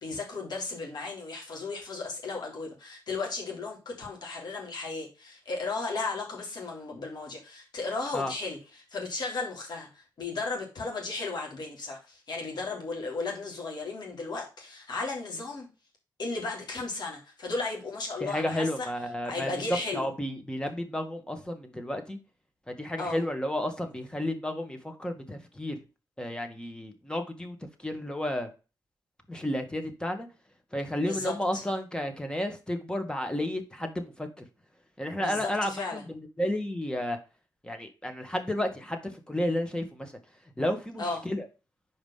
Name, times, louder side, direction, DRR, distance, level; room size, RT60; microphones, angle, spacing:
voice 1, 0.0-8.6 8.9-15.7 16.2-18.9 19.3-20.1 23.0-23.2 31.0-31.6 35.2-36.0 41.0-41.2, left 3 dB, 60° left, 3.4 m, -35 dB
voice 2, 18.2-22.2 22.7-25.8 26.2-28.5 29.3-30.3 30.7-34.5 35.0-37.2 37.6-40.2 40.6-41.5, left 1 dB, 10° left, 1.7 m, -32 dB
5.2 x 5.0 x 5.6 m
cardioid pair, 80°, 8 cm